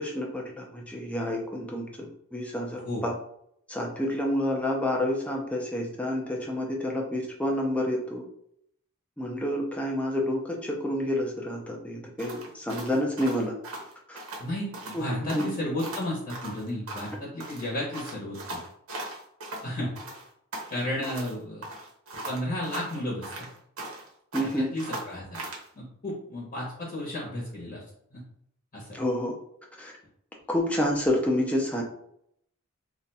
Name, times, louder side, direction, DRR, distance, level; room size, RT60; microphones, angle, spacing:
voice 1, 0.0-3.2 3.7-8.2 9.2-13.5 14.1-14.2 14.9-15.5 24.3-24.7 28.9-29.3 29.8-29.9 30.5-31.8, left 1 dB, 5° left, -1 dB, 0.5 m, -29 dB
sound 1, 12.2-14.5 14.7-15.0 15.3-17.2 17.4-19.7 20.0-21.3 21.6-24.1 24.3-25.7, right 2 dB, 70° right, 0.8 m, -39 dB
voice 2, 14.4-18.6 19.6-20.0 20.7-21.7 22.3-23.5 24.4-25.4 25.7-27.8 28.1-28.2 28.7-28.9, left 1 dB, 35° left, -4 dB, 0.9 m, -33 dB
2.5 x 2.2 x 4.0 m, 0.71 s
head